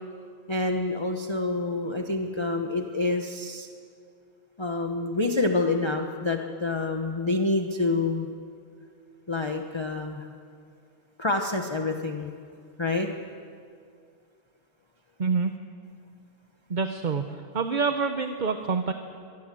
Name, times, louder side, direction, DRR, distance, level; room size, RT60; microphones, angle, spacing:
voice 1, 0.5-3.7 4.6-8.3 9.3-10.3 11.2-12.3 12.8-13.1, left 2 dB, 20° left, 3 dB, 1.0 m, -27 dB
voice 2, 15.2-15.5 16.7-17.2 17.5-18.9, right 5 dB, 40° right, 7 dB, 0.9 m, -26 dB
24.0 x 18.5 x 7.7 m, 2.3 s
omnidirectional pair, 1.5 m